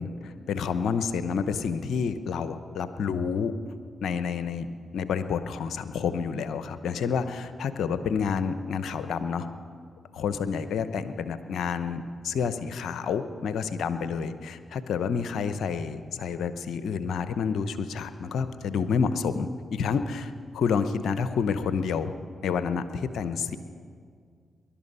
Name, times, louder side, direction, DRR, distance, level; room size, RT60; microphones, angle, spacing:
voice 1, 0.0-3.5 4.0-9.5 10.1-22.1 22.4-23.6, left 6 dB, 80° left, 11 dB, 0.7 m, -29 dB
20.5 x 11.5 x 5.5 m, 2.1 s
supercardioid pair, 45°, 0 cm